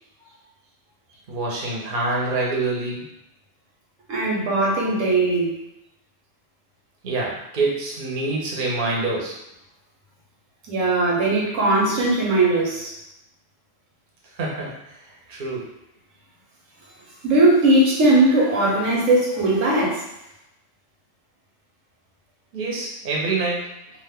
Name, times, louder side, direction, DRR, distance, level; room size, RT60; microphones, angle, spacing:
voice 1, 1.3-3.0 7.0-9.3 14.4-15.0 15.3-15.7 22.5-23.6, right 3 dB, 45° right, -3 dB, 0.8 m, -26 dB
voice 2, 4.1-5.5 10.7-12.9 17.2-20.0, right 2 dB, 85° right, -4 dB, 1.2 m, -19 dB
2.5 x 2.5 x 3.5 m, 0.86 s
omnidirectional pair, 1.3 m